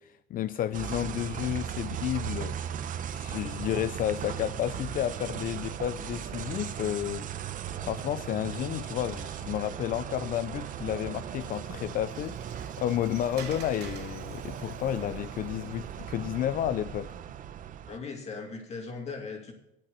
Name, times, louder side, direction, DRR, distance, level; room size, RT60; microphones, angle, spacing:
voice 1, 0.0-2.6 3.1-7.3 7.8-17.1, left 11 dB, 55° left, 0.4 m, -31 dB
sound 1, 0.7-18.0, right 9 dB, 50° right, 0.7 m, -38 dB
Water, 11.2-16.5, right 7 dB, 80° right, 1.9 m, -50 dB
voice 2, 17.9-19.5, left 4 dB, 40° left, 2.4 m, -38 dB
8.9 x 8.5 x 6.7 m
cardioid pair, 110°, 17 cm